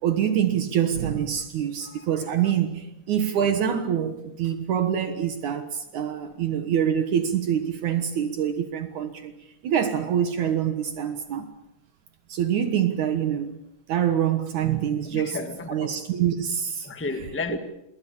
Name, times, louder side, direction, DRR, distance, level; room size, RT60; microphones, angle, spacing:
voice 1, 0.0-9.3 9.6-11.5 12.3-13.6 13.9-15.4 15.7-16.9, right 9 dB, 70° right, 2.7 m, -25 dB
voice 2, 1.6-2.4 15.0-16.0 16.8-17.6, left 3 dB, 5° left, 1.1 m, -34 dB
27.5 x 22.0 x 7.2 m
omnidirectional pair, 3.7 m